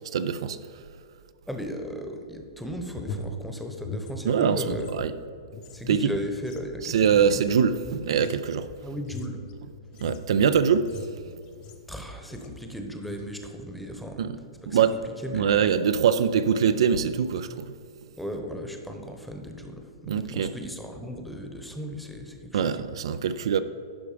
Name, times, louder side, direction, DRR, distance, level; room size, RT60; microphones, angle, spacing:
voice 1, 0.1-0.6 4.2-5.1 5.9-6.1 6.8-8.7 10.0-10.9 14.2-14.4 14.7-15.0 15.3-17.7 20.1-20.6 22.5-23.6, right 7 dB, 70° right, 0.4 m, -23 dB
voice 2, 1.5-5.1 5.7-7.4 8.8-9.4 11.9-14.3 14.6-14.8 15.2-15.6 18.2-22.9, equal, ahead, 0.9 m, -36 dB
sound 1, 2.6-5.0 5.3-12.0 12.3-12.7 13.0-13.3, left 2 dB, 35° left, 0.8 m, -41 dB
11.0 x 4.9 x 5.0 m
hypercardioid pair, 130°, 3 cm